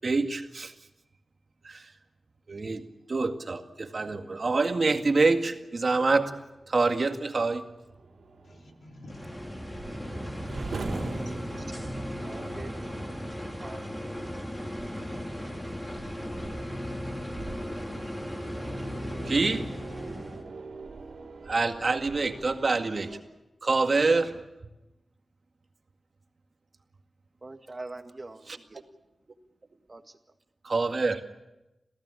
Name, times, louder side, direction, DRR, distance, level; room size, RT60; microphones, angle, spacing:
voice 1, 0.0-0.7 1.6-1.9 2.5-6.3 6.7-7.7 19.3-19.7 21.5-23.2 23.6-24.4 28.5-28.6 30.6-31.2, right 3 dB, 55° right, 2.0 m, -26 dB
sound 1, 6.4-23.2, right 3 dB, 80° right, 3.2 m, -43 dB
voice 2, 8.4-9.3, left 1 dB, 65° left, 2.9 m, -51 dB
sound 2, 9.1-20.4, equal, 10° left, 3.8 m, -36 dB
voice 3, 12.2-12.7 13.6-13.9 27.4-28.8 29.9-30.0, right 2 dB, 35° right, 1.9 m, -43 dB
27.0 x 16.0 x 9.9 m
cardioid pair, 65°, 0 cm